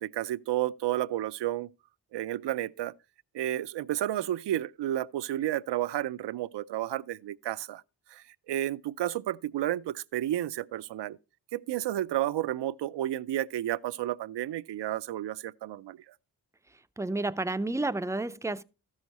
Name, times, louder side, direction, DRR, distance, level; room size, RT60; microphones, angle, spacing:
voice 1, 0.0-1.7 2.1-2.9 3.3-7.8 8.1-11.2 11.5-16.0, right 13 dB, 80° right, 0.5 m, -31 dB
voice 2, 17.0-18.6, right 2 dB, 10° right, 0.4 m, -30 dB
13.5 x 6.4 x 4.1 m
cardioid pair, 75°, 41 cm